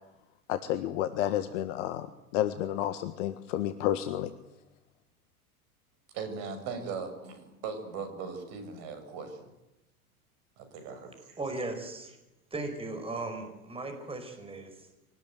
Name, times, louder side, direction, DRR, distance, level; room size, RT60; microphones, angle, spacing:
voice 1, 0.5-2.1 2.3-4.3, left 12 dB, 55° left, 10 dB, 1.6 m, -30 dB
voice 2, 6.1-9.5 10.6-11.4, right 5 dB, 50° right, 7 dB, 6.7 m, -39 dB
voice 3, 11.4-12.2 12.5-14.7, right 2 dB, 15° right, 6 dB, 5.1 m, -37 dB
24.0 x 19.0 x 9.4 m, 0.94 s
figure-of-eight pair, 90°, 44 cm